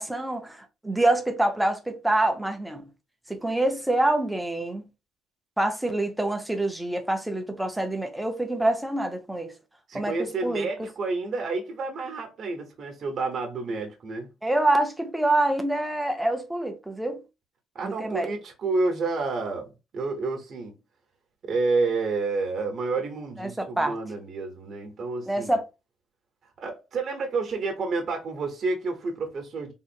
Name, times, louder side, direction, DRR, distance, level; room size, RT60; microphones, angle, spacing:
voice 1, 0.0-2.9 3.3-4.8 5.6-9.5 9.9-10.1 10.4-10.7 14.4-17.2 17.8-18.3 23.4-24.0 25.3-25.6, right 1 dB, 5° right, 0.6 m, -26 dB
voice 2, 9.9-14.3 17.7-19.7 19.9-20.7 21.4-25.5 26.6-29.7, right 3 dB, 35° right, 0.9 m, -29 dB
3.6 x 2.0 x 4.2 m
cardioid pair, 175°, 0 cm